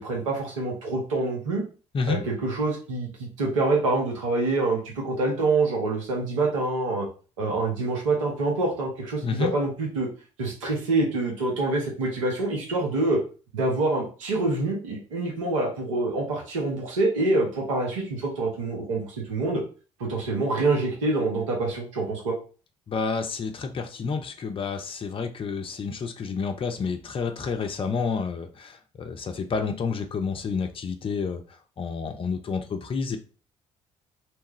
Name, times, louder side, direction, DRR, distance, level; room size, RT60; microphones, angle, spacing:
voice 1, 0.0-1.6 2.1-7.1 7.4-10.1 10.4-13.2 13.5-19.6 20.0-22.4, right 2 dB, 80° right, -1 dB, 0.8 m, -26 dB
voice 2, 22.9-31.4 31.8-33.2, left 5 dB, 35° left, 6 dB, 0.6 m, -29 dB
2.9 x 2.3 x 3.0 m, 0.36 s
hypercardioid pair, 50°, 16 cm